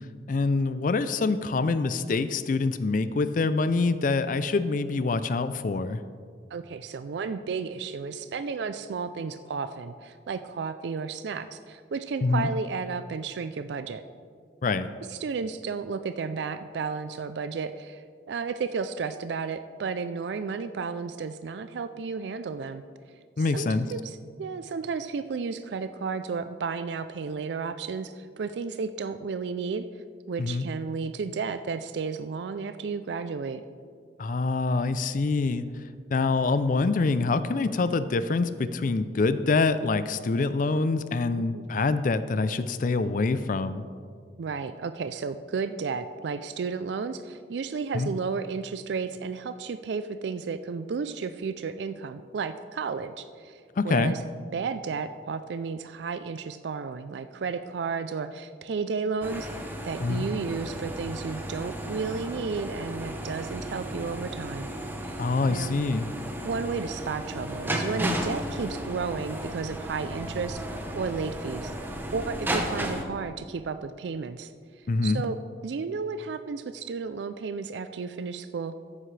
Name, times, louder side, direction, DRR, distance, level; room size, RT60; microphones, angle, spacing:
voice 1, 0.3-6.0 12.2-12.5 14.6-14.9 23.4-23.9 30.4-30.7 34.2-35.6 36.1-43.9 47.9-48.1 53.8-54.1 60.0-60.3 65.2-66.1 74.9-75.2, left 3 dB, 50° left, 13 dB, 0.4 m, -25 dB
voice 2, 6.5-14.0 15.1-22.8 23.5-29.9 30.3-33.6 41.3-41.6 44.4-54.2 54.5-64.7 65.0-65.2 65.5-65.7 66.4-71.7 72.1-74.5 75.0-75.4 75.6-78.7, right 5 dB, 75° right, 11 dB, 0.4 m, -33 dB
sound 1, 59.2-73.0, right 1 dB, 10° right, 0.9 m, -34 dB
13.5 x 10.0 x 3.3 m, 2.1 s
head